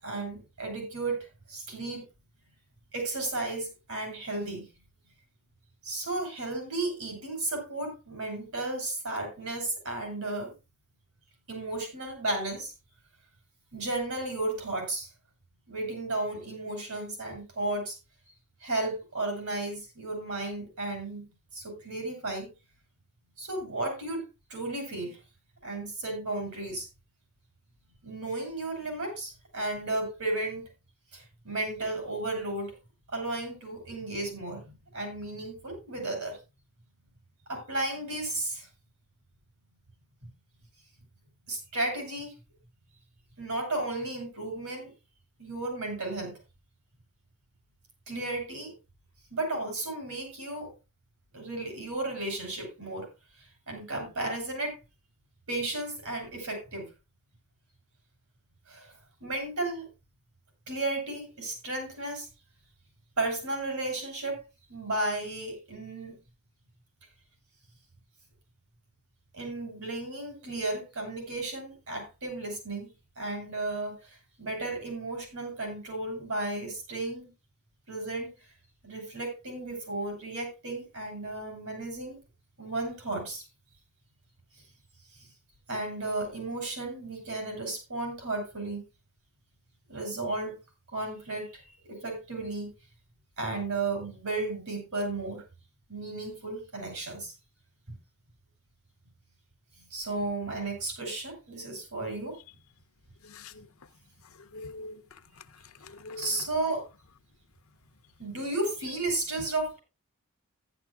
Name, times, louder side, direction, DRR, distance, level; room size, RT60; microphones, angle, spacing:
voice 1, 0.0-2.0 2.9-4.6 5.8-10.5 11.5-12.7 13.7-15.1 15.7-18.0 18.6-21.2 21.5-22.5 23.4-24.2 24.5-25.2 25.6-26.9 28.0-30.6 31.1-32.7 33.1-36.4 37.5-38.7 41.5-42.3 43.4-44.9 45.4-46.3 48.1-48.7 49.3-50.7 51.3-53.1 53.7-54.8 55.5-56.9 58.7-58.9 59.2-59.8 60.7-62.3 63.2-64.4 64.7-66.2 69.3-72.9 73.2-77.3 77.9-78.3 78.8-82.2 82.6-83.4 85.7-88.8 89.9-90.6 90.9-92.7 93.4-95.4 95.9-97.3 99.9-102.4 106.2-106.8 108.2-109.8, right 2 dB, 80° right, 7.8 m, -34 dB
voice 2, 103.2-103.7 104.5-105.0 105.8-106.5, left 3 dB, 70° left, 0.8 m, -43 dB
15.0 x 11.5 x 2.4 m
head